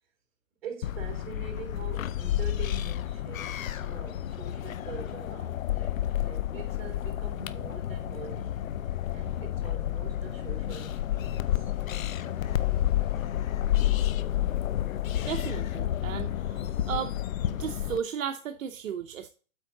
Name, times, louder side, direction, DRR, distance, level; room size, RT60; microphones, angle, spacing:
voice 1, 0.6-8.6 9.1-11.7, right 5 dB, 45° right, 3.4 m, -44 dB
sound 1, 0.8-18.0, left 12 dB, 85° left, 0.7 m, -30 dB
sound 2, 6.8-13.4, left 3 dB, 25° left, 2.4 m, -59 dB
voice 2, 15.2-17.1 17.5-19.3, right 8 dB, 75° right, 0.8 m, -35 dB
8.2 x 4.7 x 3.9 m
hypercardioid pair, 155°, 40 cm